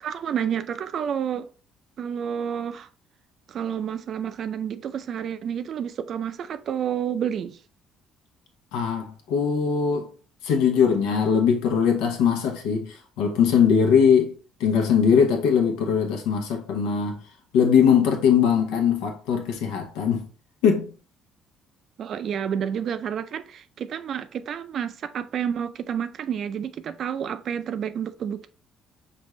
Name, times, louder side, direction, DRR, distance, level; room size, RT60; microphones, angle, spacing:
voice 1, 0.0-1.5 2.0-2.9 3.5-7.6 22.0-28.5, right 8 dB, 60° right, 0.4 m, -29 dB
voice 2, 8.7-10.1 10.4-14.3 14.6-17.2 17.5-20.3 20.6-20.9, left 7 dB, 90° left, 0.9 m, -21 dB
5.3 x 2.5 x 3.1 m
supercardioid pair, 80°, 0 cm